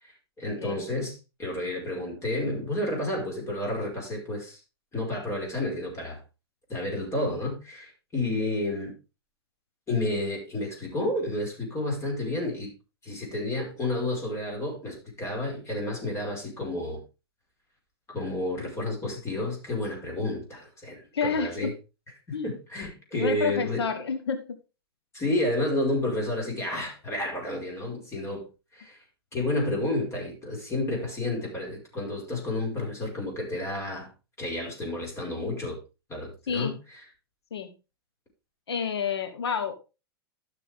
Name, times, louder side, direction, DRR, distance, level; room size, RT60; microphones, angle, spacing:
voice 1, 0.0-4.6 4.9-6.2 6.7-9.0 9.9-12.7 13.0-17.0 18.1-21.7 22.3-23.8 25.1-28.5 28.7-29.0 29.3-34.1 34.4-35.8 36.1-37.0, left 1 dB, 20° left, 5.1 m, -31 dB
voice 2, 21.1-21.7 22.3-22.6 23.1-24.6 36.5-36.8 37.5-37.7 38.7-39.7, left 6 dB, 85° left, 1.2 m, -29 dB
12.5 x 6.8 x 3.6 m
hypercardioid pair, 115°, 13 cm